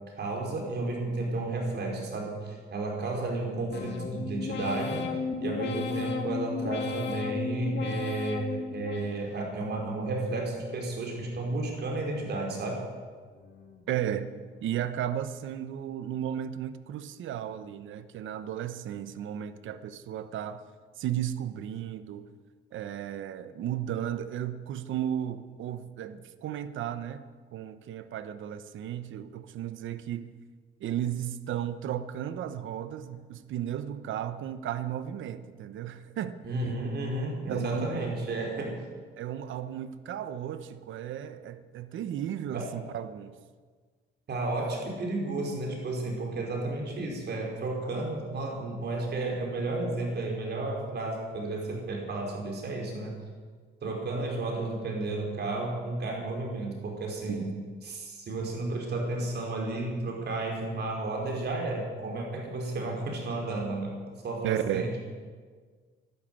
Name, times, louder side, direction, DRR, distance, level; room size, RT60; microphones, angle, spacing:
voice 1, 0.2-5.1 5.4-12.8 36.4-38.7 42.5-42.7 44.3-53.1 53.8-57.5 57.8-63.9 64.2-65.0, right 2 dB, 55° right, 0 dB, 5.0 m, -32 dB
sound 1, 3.7-9.6 10.0-10.6 11.1-11.7 12.2-12.8 13.3-13.9 14.4-14.9, left 5 dB, 60° left, 2.3 m, -36 dB
voice 2, 13.9-14.3 14.6-20.6 21.0-22.3 22.7-30.3 30.8-36.4 37.5-38.0 39.2-43.4 57.3-57.4 64.4-64.8, right 10 dB, 80° right, 12 dB, 1.0 m, -34 dB
12.0 x 12.0 x 9.2 m, 1.5 s
cardioid pair, 90°, 20 cm